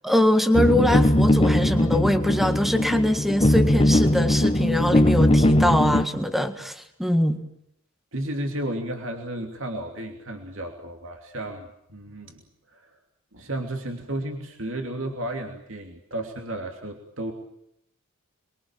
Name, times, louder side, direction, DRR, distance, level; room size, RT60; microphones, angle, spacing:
voice 1, 0.0-7.4, left 1 dB, ahead, 8 dB, 1.7 m, -23 dB
sound 1, 0.5-6.0, left 1 dB, 25° left, 1.0 m, -20 dB
voice 2, 8.1-12.4 12.7-13.0 13.3-17.3, right 1 dB, 60° right, 3 dB, 2.9 m, -33 dB
29.0 x 22.5 x 7.5 m, 0.74 s
head